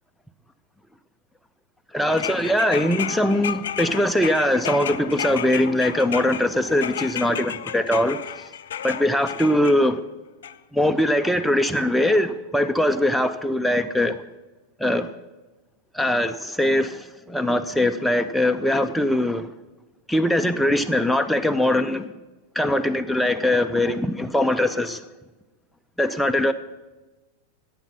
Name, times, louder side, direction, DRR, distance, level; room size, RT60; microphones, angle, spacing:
voice 1, 1.9-8.2 8.8-10.0 10.7-14.2 14.8-15.1 15.9-19.5 20.1-22.0 22.6-25.0 26.0-26.5, left 1 dB, ahead, 6 dB, 0.5 m, -21 dB
constant strum, 2.1-9.8 10.4-10.5, left 9 dB, 60° left, 0.5 m, -32 dB
10.5 x 8.2 x 6.1 m, 1.1 s
figure-of-eight pair, 90°, 0 cm